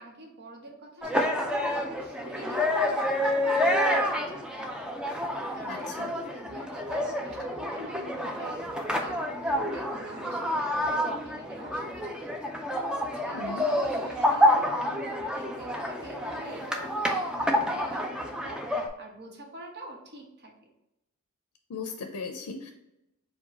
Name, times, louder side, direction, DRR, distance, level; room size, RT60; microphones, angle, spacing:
voice 1, 0.0-4.8 5.5-12.5 13.0-20.7, right 1 dB, 50° right, 0 dB, 1.0 m, -46 dB
sound 1, 1.0-18.9, left 1 dB, 5° right, 0.4 m, -28 dB
voice 2, 5.7-6.1 13.3-13.6 21.7-22.7, left 4 dB, 85° left, 5 dB, 0.5 m, -37 dB
4.6 x 2.2 x 4.1 m, 0.89 s
head